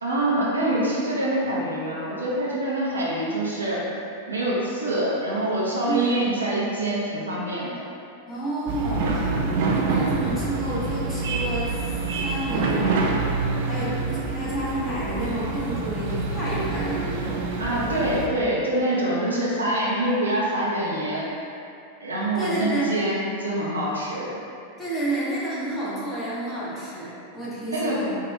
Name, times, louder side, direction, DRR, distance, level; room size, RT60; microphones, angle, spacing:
voice 1, 0.0-3.8 4.3-7.7 17.6-21.3 22.0-24.4 27.7-28.0, right 1 dB, 75° right, -6 dB, 0.8 m, -25 dB
voice 2, 5.8-6.3 8.3-11.8 12.2-13.2 13.6-14.0 14.2-17.4 22.3-22.9 24.8-28.2, right 1 dB, 15° left, -10 dB, 1.2 m, -30 dB
sound 1, 8.7-18.3, right 3 dB, 50° right, 0.4 m, -26 dB
4.3 x 2.5 x 3.3 m, 2.6 s
figure-of-eight pair, 90°, 0 cm